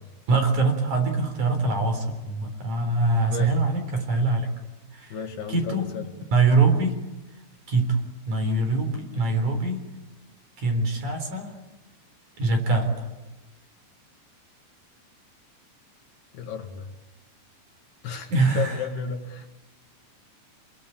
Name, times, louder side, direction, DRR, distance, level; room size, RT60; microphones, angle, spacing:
voice 1, 0.3-4.5 4.9-5.2 5.5-7.0 7.7-8.0 8.3-9.8 10.6-11.6 12.4-13.1 18.3-19.0, right 3 dB, 45° right, 5 dB, 4.9 m, -24 dB
voice 2, 5.1-6.0 16.3-16.9 18.0-19.5, left 7 dB, 65° left, 4 dB, 3.8 m, -33 dB
29.0 x 21.5 x 8.7 m, 1.1 s
omnidirectional pair, 5.4 m